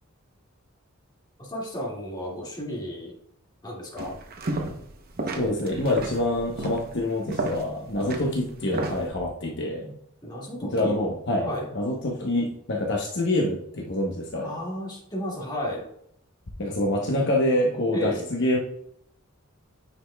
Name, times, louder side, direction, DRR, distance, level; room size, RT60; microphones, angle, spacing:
voice 1, 1.4-3.1 3.6-4.1 10.2-11.0 11.4-11.7 14.3-15.8 17.9-18.3, equal, 20° left, -4 dB, 2.1 m, -33 dB
sound 1, 4.0-4.9 5.2-9.1, right 2 dB, 45° right, 0.8 m, -32 dB
voice 2, 5.4-9.9 10.7-11.5 11.7-14.5 16.6-18.6, left 1 dB, 55° left, -1 dB, 1.0 m, -26 dB
9.6 x 5.2 x 2.3 m, 0.71 s
head